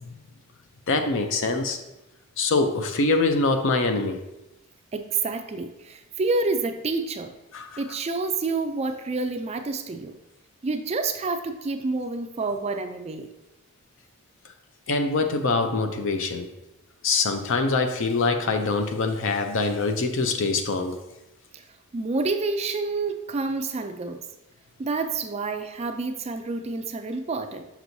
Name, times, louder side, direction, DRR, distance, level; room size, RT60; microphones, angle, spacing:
voice 1, 0.9-1.8 2.4-4.2 7.5-7.8 14.9-16.5 17.0-21.0, left 3 dB, 60° left, 7 dB, 0.6 m, -24 dB
voice 2, 4.9-7.3 7.8-10.2 10.6-13.3 21.5-21.7 21.9-24.3 24.8-27.6, right 3 dB, 30° right, 7 dB, 0.4 m, -28 dB
6.1 x 5.8 x 2.7 m, 0.94 s
head